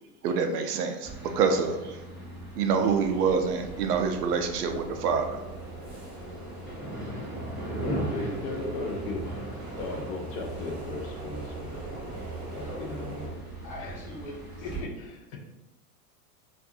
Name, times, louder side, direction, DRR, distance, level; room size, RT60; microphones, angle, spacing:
voice 1, 0.2-2.0 2.6-5.4, right 5 dB, 80° right, 6 dB, 0.6 m, -26 dB
sound 1, 1.0-14.8, right 2 dB, ahead, 0.4 m, -39 dB
sound 2, 2.8-13.3, right 1 dB, 20° right, 0.7 m, -43 dB
voice 2, 7.6-9.4 9.7-11.8 12.5-13.3 13.8-14.0 14.6-15.4, left 2 dB, 60° left, 1 dB, 0.7 m, -36 dB
voice 3, 12.6-13.2 13.6-14.9, left 1 dB, 15° left, -5 dB, 1.0 m, -43 dB
2.5 x 2.5 x 2.6 m, 0.99 s
hypercardioid pair, 120°, 46 cm